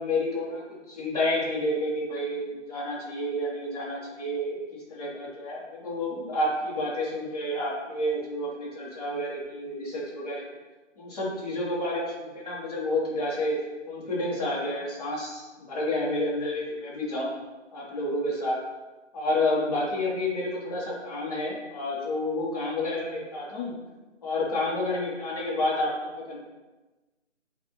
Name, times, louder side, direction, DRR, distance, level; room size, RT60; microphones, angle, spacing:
voice 1, 0.0-10.5 11.0-13.6 13.9-17.3 17.7-18.6 19.1-23.7 24.2-26.4, left 1 dB, 30° left, -5 dB, 1.3 m, -30 dB
6.5 x 2.5 x 3.1 m, 1.2 s
figure-of-eight pair, 160°, 37 cm